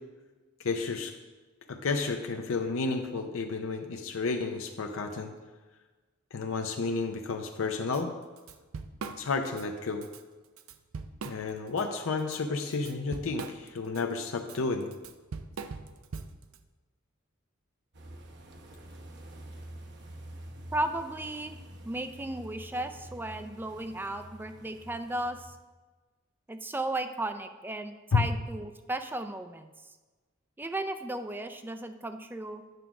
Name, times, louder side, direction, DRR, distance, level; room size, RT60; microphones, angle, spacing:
voice 1, 0.6-1.1 1.7-5.3 6.3-8.1 9.2-10.1 11.2-14.9 28.1-28.2, left 4 dB, 75° left, 4 dB, 0.6 m, -31 dB
Drum kit / Drum, 7.9-8.0 8.4-9.7 10.0-10.2 10.6-11.8 12.2-16.6, right 4 dB, 80° right, 0.5 m, -41 dB
sound 1, 17.9-25.5, right 1 dB, 55° right, 0.9 m, -47 dB
voice 2, 20.7-21.6 21.8-25.6 26.5-29.7 30.6-32.6, right 2 dB, 10° right, 8 dB, 0.4 m, -35 dB
9.2 x 3.7 x 5.9 m, 1.3 s
head